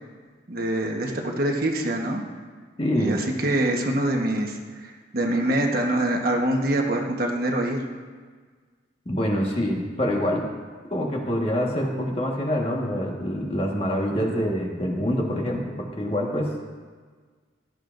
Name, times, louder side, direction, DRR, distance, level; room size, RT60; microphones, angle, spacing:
voice 1, 0.5-2.2 2.9-7.8, right 1 dB, 50° right, 1 dB, 1.3 m, -25 dB
voice 2, 2.8-3.2 9.0-10.5 10.9-16.5, equal, 30° left, -1 dB, 1.6 m, -25 dB
17.0 x 12.0 x 2.6 m, 1.5 s
head